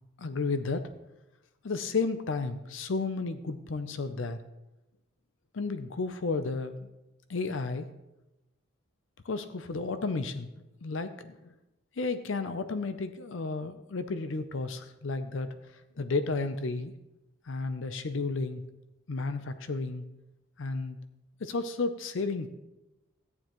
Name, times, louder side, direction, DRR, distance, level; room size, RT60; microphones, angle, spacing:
voice 1, 0.2-0.9 1.6-4.4 5.5-6.9 7.3-7.9 9.2-10.5 10.8-11.4 12.0-15.5 16.0-16.9 17.5-18.6 19.1-20.0 20.6-21.0 21.4-22.6, left 3 dB, 70° left, 10 dB, 0.6 m, -32 dB
14.0 x 9.6 x 3.0 m, 0.95 s
head